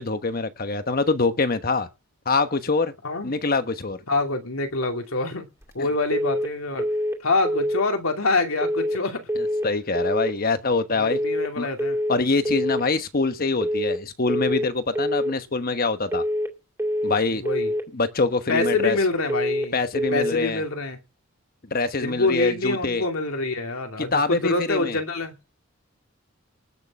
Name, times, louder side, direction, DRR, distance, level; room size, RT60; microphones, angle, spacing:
voice 1, 0.0-1.9 2.2-2.9 3.2-4.0 5.8-5.9 9.4-11.2 11.6-11.7 12.1-16.2 17.0-17.4 17.9-19.0 19.7-20.6 21.7-23.0 24.0-25.0, left 3 dB, 45° left, 1.1 m, -24 dB
voice 2, 3.0-3.4 4.1-5.5 5.7-6.9 7.2-9.3 10.9-12.0 17.3-17.7 18.5-19.8 20.1-21.0 22.0-25.3, left 2 dB, 80° left, 2.6 m, -26 dB
sound 1, 6.1-6.5 6.8-7.2 7.4-7.8 8.6-9.0 9.3-9.7 9.9-10.3 11.1-11.5 11.8-12.2 12.4-12.8 13.6-14.0 14.3-14.7 14.9-15.3 16.1-16.5 16.8-17.2 17.5-17.8 18.6-19.0 19.3-19.7 20.0-20.4, equal, 15° right, 2.1 m, -25 dB
19.5 x 6.6 x 7.4 m
head